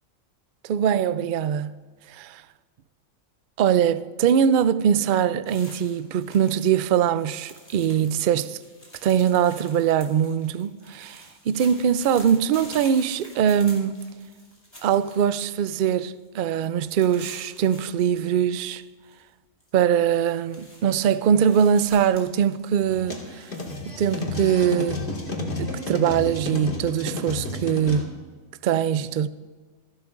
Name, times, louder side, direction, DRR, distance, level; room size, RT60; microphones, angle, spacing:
voice 1, 0.6-1.7 2.1-2.4 3.6-8.6 9.0-14.0 14.8-18.8 19.7-23.5 23.8-25.0 25.6-28.1 28.6-29.3, right 8 dB, 75° right, 0.4 m, -22 dB
sound 1, 5.5-6.8 7.0-15.8 16.1-16.3 16.6-18.4 18.7-19.2 19.6-24.2, equal, 20° left, 4.4 m, -48 dB
sound 2, 22.8-28.0, left 2 dB, 50° left, 2.3 m, -31 dB
27.0 x 12.5 x 2.5 m
omnidirectional pair, 1.4 m